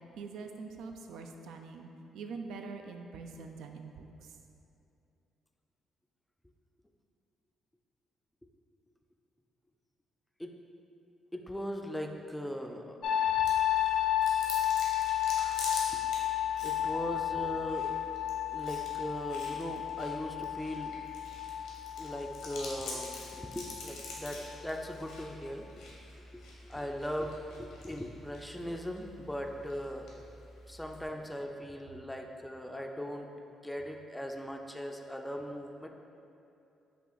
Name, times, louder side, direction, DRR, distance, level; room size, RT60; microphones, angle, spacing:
voice 1, 0.0-4.3, right 4 dB, 80° right, 4 dB, 0.3 m, -44 dB
voice 2, 11.3-13.4 15.9-16.0 16.6-17.9 18.5-20.9 22.0-25.7 26.3-26.4 26.7-30.2 30.7-33.3 33.6-35.9, equal, 5° left, 3 dB, 0.3 m, -39 dB
sound 1, 13.0-24.7 25.0-25.5, left 11 dB, 70° left, 0.4 m, -32 dB
Chewing mastication, 13.5-31.1, left 2 dB, 85° left, 0.9 m, -47 dB
5.7 x 2.4 x 3.9 m, 2.7 s
cardioid pair, 90°, 0 cm